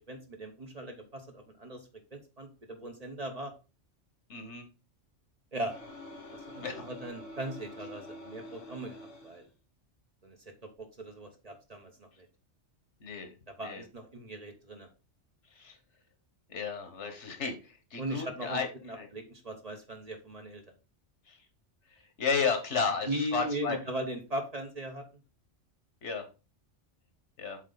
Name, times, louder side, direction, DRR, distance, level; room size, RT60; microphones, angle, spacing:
voice 1, 0.1-3.5 5.5-5.8 6.3-9.5 10.2-12.3 13.5-14.9 18.0-20.6 23.1-25.0, right 1 dB, 35° right, 4 dB, 1.0 m, -39 dB
voice 2, 4.3-4.7 6.6-6.8 13.0-13.3 13.6-13.8 15.5-15.8 16.5-18.7 19.0-19.1 21.3-21.4 22.2-23.8 26.0-26.2 27.4-27.6, left 5 dB, 70° left, 6 dB, 1.6 m, -33 dB
sound 1, 5.7-9.4, left 1 dB, 85° left, 1.6 m, -47 dB
7.5 x 4.0 x 3.9 m, 0.31 s
omnidirectional pair, 1.2 m